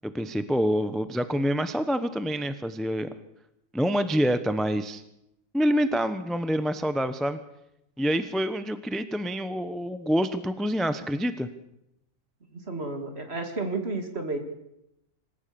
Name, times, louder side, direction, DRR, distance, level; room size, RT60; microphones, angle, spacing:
voice 1, 0.0-3.1 3.7-5.0 5.5-7.4 8.0-11.5, equal, ahead, 11 dB, 0.8 m, -26 dB
voice 2, 12.5-14.4, right 3 dB, 45° right, 5 dB, 2.8 m, -32 dB
26.5 x 15.0 x 7.1 m, 0.84 s
omnidirectional pair, 1.6 m